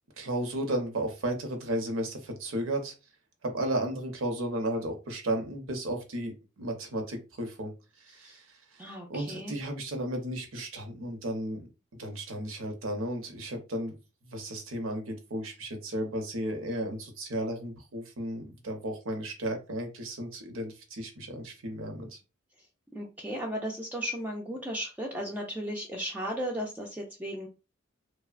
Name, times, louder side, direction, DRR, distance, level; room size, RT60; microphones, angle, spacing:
voice 1, 0.2-2.9 3.4-7.7 8.0-8.8 9.1-11.7 12.0-13.9 14.2-22.2, right 1 dB, 75° right, 5 dB, 0.7 m, -34 dB
voice 2, 8.8-9.5 22.9-27.5, equal, 10° right, -1 dB, 0.4 m, -35 dB
3.0 x 2.0 x 2.4 m, 0.30 s
head